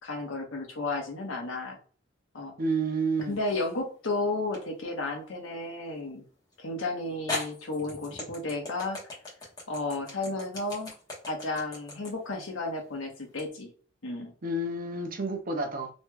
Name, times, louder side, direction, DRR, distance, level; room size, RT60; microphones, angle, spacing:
voice 1, 0.0-1.8 2.3-2.5 3.3-6.2 6.6-9.0 9.7-10.9 11.3-13.7 14.0-14.3, left 2 dB, 80° left, 1 dB, 1.0 m, -33 dB
voice 2, 2.6-3.4 14.4-15.9, right 2 dB, 45° right, 5 dB, 0.6 m, -30 dB
sound 1, 3.2-3.8 4.5-4.6 6.5-6.6 7.3-13.5, left 2 dB, 20° left, 1.1 m, -39 dB
3.1 x 3.0 x 2.3 m, 0.41 s
head